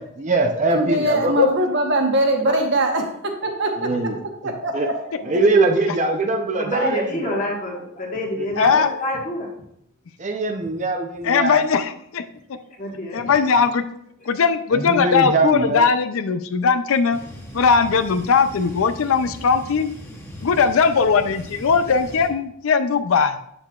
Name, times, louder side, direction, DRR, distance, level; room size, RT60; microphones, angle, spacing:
voice 1, 0.2-1.3 3.8-4.1 4.7-4.9 5.2-7.4 8.4-8.5 10.2-11.6 14.7-15.9, right 3 dB, 35° right, 4 dB, 0.5 m, -21 dB
voice 2, 0.7-4.9, right 1 dB, 55° right, 3 dB, 1.0 m, -22 dB
voice 3, 6.5-9.5 12.7-13.4, left 1 dB, 35° left, -1 dB, 1.4 m, -28 dB
voice 4, 8.6-8.9 11.2-12.2 12.5-12.6 13.1-13.9 14.3-17.2 17.5-19.9 20.4-23.4, left 5 dB, 75° left, 10 dB, 0.4 m, -19 dB
sound 1, 17.1-22.3, equal, 10° left, 0.8 m, -39 dB
7.5 x 6.8 x 2.4 m, 0.73 s
head